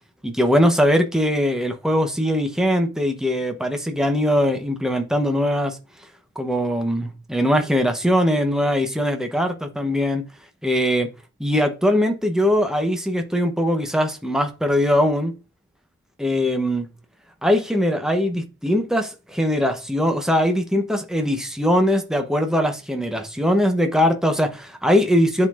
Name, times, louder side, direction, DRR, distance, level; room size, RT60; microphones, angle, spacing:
voice 1, 0.2-5.8 6.4-10.2 10.6-11.1 11.4-15.3 16.2-16.9 17.4-25.5, equal, 5° right, 0.8 m, -21 dB
11.0 x 3.8 x 2.4 m
head